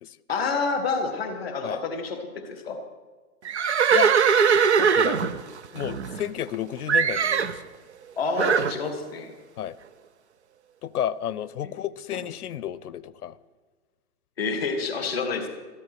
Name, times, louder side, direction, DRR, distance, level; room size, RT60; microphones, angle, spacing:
voice 1, 0.3-2.8 8.2-9.3 11.6-11.7 12.1-12.2 14.4-15.5, left 4 dB, 5° right, -14 dB, 0.6 m, -28 dB
Livestock farm animals working animals, 3.4-6.5 6.9-7.6 8.4-8.8, right 6 dB, 50° right, 0.6 m, -21 dB
voice 2, 4.8-5.4 5.7-7.6 9.6-9.8 10.8-13.4 15.0-15.1, left 10 dB, 80° left, 19 dB, 0.7 m, -31 dB
13.5 x 10.5 x 6.1 m, 1.4 s
hypercardioid pair, 180°, 44 cm